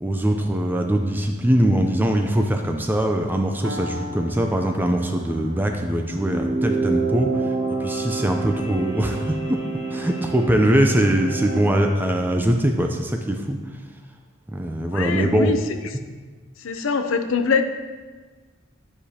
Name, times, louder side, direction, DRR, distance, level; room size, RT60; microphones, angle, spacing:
voice 1, 0.0-7.5 7.8-9.6 9.9-13.6 14.5-15.5, right 1 dB, 10° right, 3 dB, 0.4 m, -22 dB
Piano, 3.6-11.6, equal, 65° right, 0.7 m, -42 dB
sound 1, 6.1-11.8, right 3 dB, 35° right, 1.9 m, -27 dB
voice 2, 14.9-15.6 16.6-17.6, left 5 dB, 75° left, 8 dB, 0.5 m, -23 dB
10.0 x 4.9 x 2.8 m, 1.4 s
head